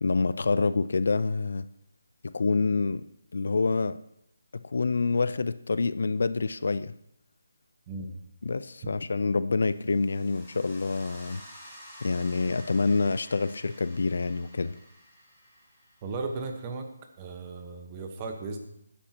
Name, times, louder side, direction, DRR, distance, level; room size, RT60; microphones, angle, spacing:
voice 1, 0.0-1.7 2.2-3.0 3.3-4.0 4.5-6.9 8.4-11.4 12.0-14.7, left 4 dB, 65° left, 15 dB, 0.5 m, -27 dB
sound 1, 9.7-16.6, equal, ahead, 3.0 m, -51 dB
voice 2, 16.0-16.9 17.2-18.6, right 3 dB, 20° right, 4 dB, 1.2 m, -36 dB
19.5 x 10.0 x 2.9 m, 0.77 s
hypercardioid pair, 170°, 0 cm